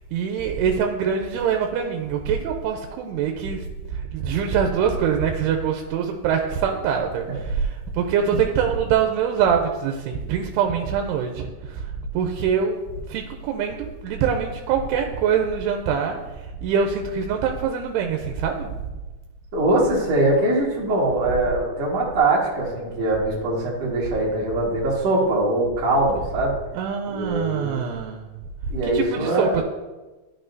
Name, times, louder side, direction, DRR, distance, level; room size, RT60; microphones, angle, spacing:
voice 1, 0.1-3.6 3.9-11.9 12.1-16.2 16.6-18.7 26.7-28.3 28.8-29.6, right 7 dB, 85° right, 3 dB, 2.6 m, -24 dB
voice 2, 19.5-26.6 27.0-27.8 28.7-29.6, right 1 dB, 50° right, -5 dB, 2.2 m, -22 dB
12.5 x 5.6 x 2.6 m, 1.1 s
omnidirectional pair, 4.7 m